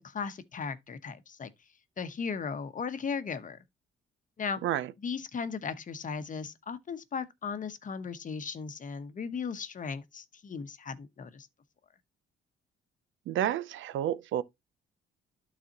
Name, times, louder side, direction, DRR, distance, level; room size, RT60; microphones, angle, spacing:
voice 1, 0.0-1.5 2.0-3.6 4.4-4.6 5.0-11.5, left 5 dB, 40° left, 1.0 m, -37 dB
voice 2, 4.6-4.9 13.3-14.4, right 11 dB, 75° right, 0.6 m, -30 dB
12.0 x 4.2 x 2.9 m
cardioid pair, 90°, 20 cm